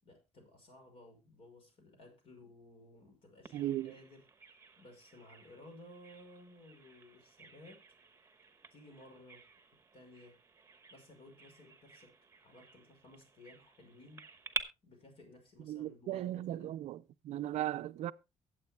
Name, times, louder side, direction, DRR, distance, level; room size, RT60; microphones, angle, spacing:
voice 1, 0.0-4.3 4.8-7.8 8.7-9.5 9.9-10.4 10.9-12.1 12.4-14.2 14.8-16.7, left 1 dB, 55° left, 6.0 m, -57 dB
Bird vocalization bird call bird song, 3.5-14.6, right 4 dB, 25° right, 1.1 m, -49 dB
voice 2, 3.5-3.9 15.7-17.0 17.2-18.1, right 13 dB, 75° right, 0.5 m, -37 dB
23.5 x 7.9 x 2.2 m
cardioid pair, 120°, 12 cm